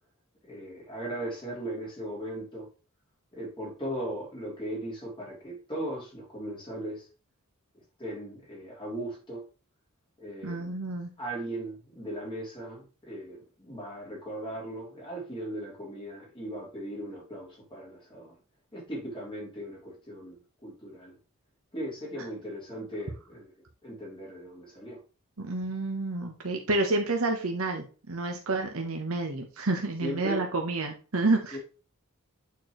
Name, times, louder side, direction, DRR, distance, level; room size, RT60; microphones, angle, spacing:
voice 1, 0.4-2.7 3.3-7.1 7.7-9.5 10.2-10.7 11.2-18.3 18.7-21.2 21.7-23.5 23.8-25.0 30.0-30.5 31.5-31.6, right 1 dB, 25° left, 3.2 m, -38 dB
voice 2, 10.4-11.1 25.4-31.6, right 2 dB, 80° right, 1.1 m, -29 dB
8.5 x 4.6 x 3.1 m
head